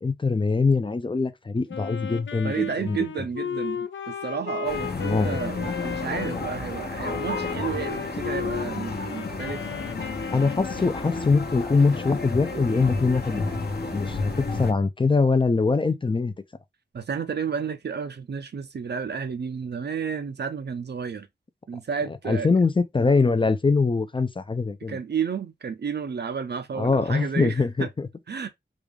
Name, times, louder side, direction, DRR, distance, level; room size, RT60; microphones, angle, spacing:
voice 1, 0.0-3.0 5.0-5.4 10.3-16.3 22.3-25.0 26.8-28.1, left 4 dB, 25° left, 0.4 m, -23 dB
Wind instrument woodwind instrument, 1.7-6.4 7.0-11.0, left 8 dB, 80° left, 0.5 m, -35 dB
voice 2, 2.4-9.6 16.9-21.3 21.7-22.5 24.9-27.9 28.3-28.5, right 6 dB, 60° right, 0.5 m, -31 dB
sound 1, 4.6-14.7, left 3 dB, 55° left, 0.9 m, -31 dB
3.6 x 2.3 x 3.2 m
wide cardioid pair, 95°, 20 cm